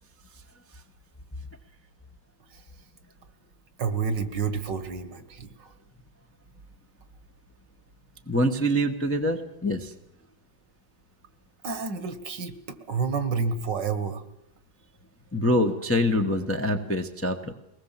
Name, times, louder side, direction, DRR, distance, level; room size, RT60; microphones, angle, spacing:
voice 1, 3.8-5.5 11.6-14.2, right 5 dB, 65° right, 11 dB, 2.1 m, -29 dB
voice 2, 8.3-9.9 15.3-17.5, equal, 10° left, 5 dB, 0.9 m, -25 dB
22.5 x 19.5 x 7.4 m, 0.84 s
omnidirectional pair, 2.1 m